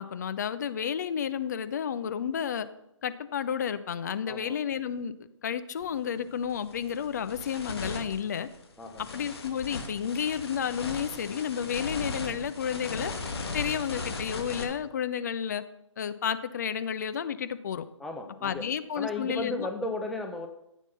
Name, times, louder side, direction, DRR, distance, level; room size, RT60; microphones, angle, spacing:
voice 1, 0.0-2.7 3.0-5.1 5.4-8.5 9.0-13.1 13.5-15.6 16.0-17.8 18.4-19.7, left 8 dB, 35° left, 11 dB, 0.8 m, -31 dB
voice 2, 4.3-4.6 8.8-9.0 18.0-18.7 18.9-20.5, left 2 dB, ahead, 3 dB, 0.6 m, -35 dB
sound 1, 5.8-6.0 6.4-14.6, left 3 dB, 50° left, 2.4 m, -38 dB
14.0 x 8.3 x 6.9 m, 0.82 s
figure-of-eight pair, 140°, 16 cm